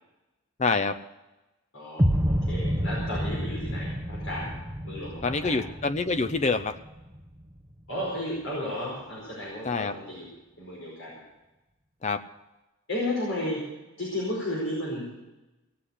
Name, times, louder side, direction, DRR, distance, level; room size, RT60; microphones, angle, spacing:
voice 1, 0.6-1.0 5.2-6.8 9.6-9.9 12.0-12.2, left 4 dB, 35° left, 10 dB, 0.5 m, -26 dB
voice 2, 1.7-4.6 4.8-5.6 7.9-10.2 10.6-11.2 12.9-15.2, left 1 dB, 75° left, -5 dB, 4.9 m, -33 dB
sound 1, 2.0-8.0, equal, 10° right, 1.0 m, -29 dB
17.5 x 7.9 x 8.3 m, 1.0 s
head